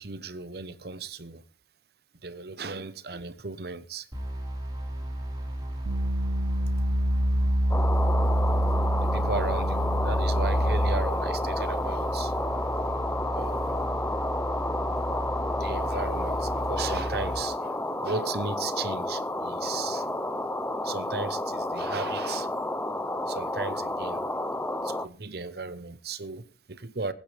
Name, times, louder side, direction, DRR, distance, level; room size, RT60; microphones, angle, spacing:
voice 1, 0.0-1.4 2.2-4.1 9.0-12.3 13.0-13.8 15.6-17.8 18.0-20.1 20.8-22.5 23.3-24.2 24.8-27.1, right 4 dB, 55° right, 1.0 m, -36 dB
sound 1, 4.1-17.4, right 1 dB, 20° right, 3.8 m, -35 dB
sound 2, 5.9-11.1, equal, 80° right, 1.0 m, -25 dB
sound 3, 7.7-25.1, left 1 dB, 10° left, 0.6 m, -31 dB
22.0 x 9.5 x 3.4 m
head